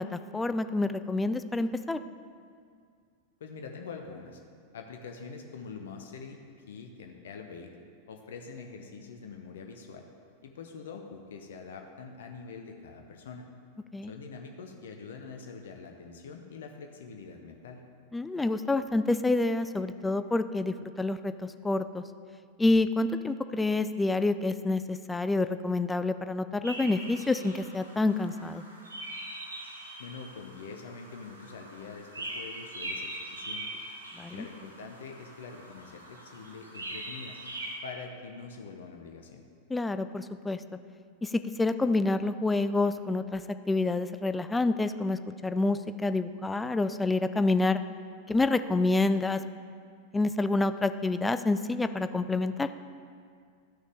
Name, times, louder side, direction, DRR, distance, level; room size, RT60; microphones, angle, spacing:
voice 1, 0.0-2.0 13.9-14.1 18.1-22.0 22.6-28.6 34.2-34.5 39.7-40.6 41.2-43.4 43.7-47.8 48.3-49.4 50.1-52.7, left 2 dB, 10° left, 11 dB, 0.3 m, -28 dB
voice 2, 3.4-4.4 4.7-6.4 6.7-7.7 8.1-10.1 10.4-13.5 14.1-17.8 30.0-33.7 34.3-37.4 37.8-39.4, left 5 dB, 60° left, 3 dB, 0.7 m, -44 dB
sound 1, 26.6-37.8, right 1 dB, 80° right, 1.3 m, -42 dB
13.0 x 6.3 x 3.5 m, 2.2 s
figure-of-eight pair, 90°, 0 cm